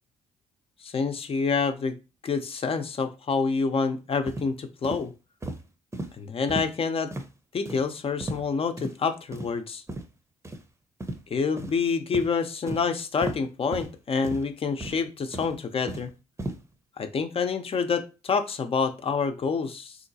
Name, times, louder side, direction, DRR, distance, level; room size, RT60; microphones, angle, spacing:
voice 1, 0.8-2.0 2.2-5.1 6.1-7.1 7.5-9.8 11.3-16.1 17.0-20.0, left 5 dB, 45° left, 7 dB, 0.7 m, -27 dB
sound 1, 4.3-4.5 4.8-5.0 5.4-5.6 5.9-6.1 6.5-6.7 7.1-7.3 7.7-7.8 8.2-8.4 8.8-8.9 9.3-9.5 9.9-10.0 10.4-10.6 11.0-11.2 11.6-11.8 12.1-12.3 12.7-12.8 13.2-13.4 13.7-13.9 14.2-14.4 14.8-15.0 15.3-16.1 16.4-16.6, right 1 dB, 20° right, 0.8 m, -34 dB
3.7 x 2.8 x 2.7 m, 0.30 s
hypercardioid pair, 45°, 14 cm